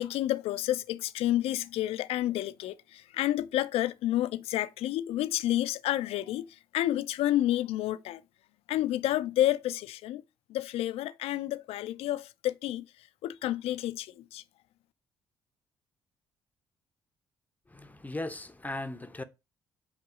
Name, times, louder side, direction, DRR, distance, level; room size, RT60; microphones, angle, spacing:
voice 1, 0.0-6.5 6.7-8.2 8.7-10.2 10.5-12.8 13.2-14.4, left 14 dB, 65° left, 0.5 m, -30 dB
voice 2, 17.7-19.2, left 2 dB, 15° left, 0.8 m, -37 dB
8.0 x 3.0 x 5.0 m
hypercardioid pair, 45°, 11 cm